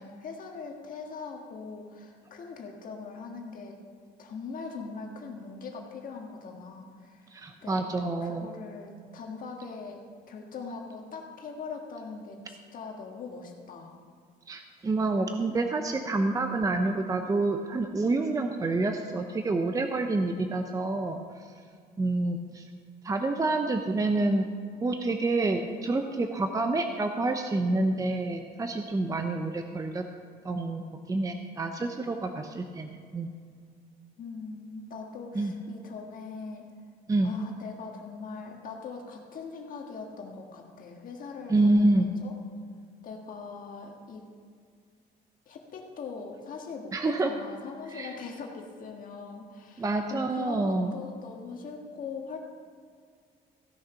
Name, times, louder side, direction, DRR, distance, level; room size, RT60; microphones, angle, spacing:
voice 1, 0.0-3.8 4.2-7.3 7.6-7.8 8.2-14.0 34.2-36.7 37.2-42.3 43.0-44.3 45.5-52.4, left 4 dB, 55° left, 1 dB, 1.6 m, -41 dB
voice 2, 7.3-8.5 14.5-21.2 22.0-22.7 23.0-24.5 24.8-30.0 30.4-33.3 35.3-35.5 37.1-37.3 41.5-42.1 46.9-47.3 47.9-48.1 49.8-50.9, right 2 dB, 20° right, 5 dB, 0.7 m, -28 dB
15.5 x 6.4 x 5.8 m, 2.1 s
cardioid pair, 110°, 17 cm